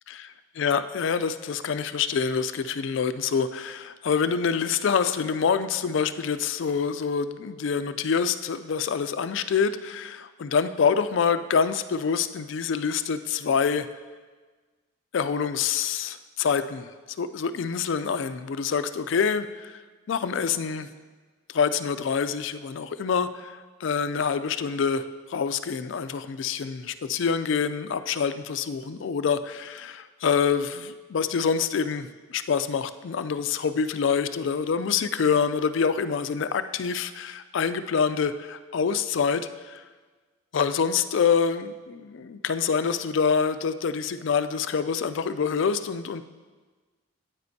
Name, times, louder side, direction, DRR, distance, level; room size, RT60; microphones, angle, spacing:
voice 1, 0.6-13.9 15.1-19.8 20.1-20.9 21.5-39.8 40.5-46.2, left 6 dB, 60° left, 12 dB, 0.3 m, -26 dB
9.4 x 8.8 x 2.7 m, 1.4 s
head